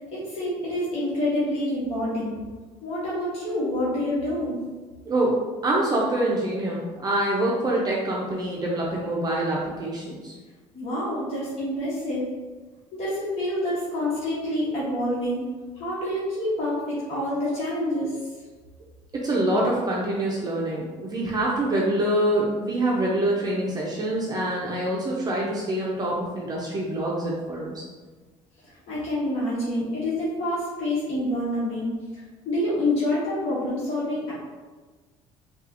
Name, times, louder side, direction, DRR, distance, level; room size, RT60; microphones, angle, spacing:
voice 1, 0.1-2.4 2.8-4.6 10.7-12.3 12.9-15.4 15.7-18.2 28.6-34.3, left 1 dB, 55° left, -9 dB, 1.2 m, -27 dB
voice 2, 5.1-10.3 19.2-27.8, right 1 dB, 30° right, -4 dB, 0.6 m, -25 dB
4.0 x 2.4 x 2.7 m, 1.3 s
cardioid pair, 105°, 13 cm